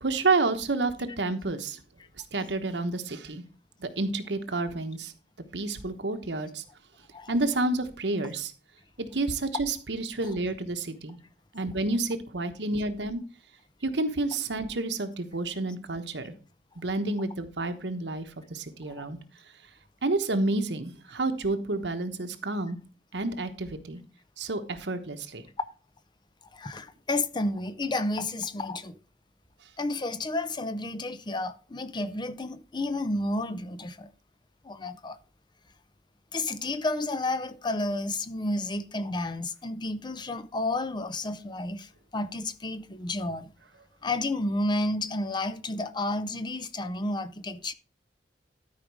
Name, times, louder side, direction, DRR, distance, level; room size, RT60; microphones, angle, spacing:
voice 1, 0.0-1.8 2.3-3.4 3.8-5.1 5.5-6.6 7.3-8.5 9.0-11.2 11.5-13.2 13.8-16.3 16.8-19.2 20.0-22.8 23.1-24.0 24.4-25.4, right 2 dB, 85° right, 1.2 m, -29 dB
voice 2, 26.5-29.0 29.8-34.1 34.6-35.2 36.3-43.5 44.0-47.7, left 2 dB, 25° left, 0.6 m, -31 dB
12.5 x 5.0 x 4.8 m
head